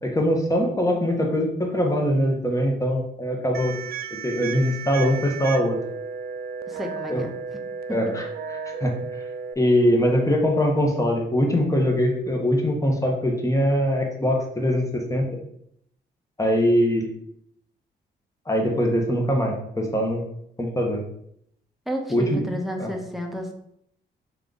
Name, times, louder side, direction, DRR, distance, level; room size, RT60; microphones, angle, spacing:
voice 1, 0.0-3.7 4.2-5.8 7.1-7.2 7.9-8.3 8.8-8.9 9.6-15.2 16.4-17.1 18.5-20.2 20.6-21.0 22.1-22.4 22.8-22.9, equal, 15° left, 1 dB, 1.3 m, -22 dB
sound 1, 3.5-9.5, right 6 dB, 50° right, 0.4 m, -34 dB
voice 2, 6.7-7.3 7.9-8.0 21.9-23.5, equal, ahead, 2 dB, 1.0 m, -31 dB
3.7 x 3.2 x 4.0 m, 0.72 s
supercardioid pair, 60°, 20 cm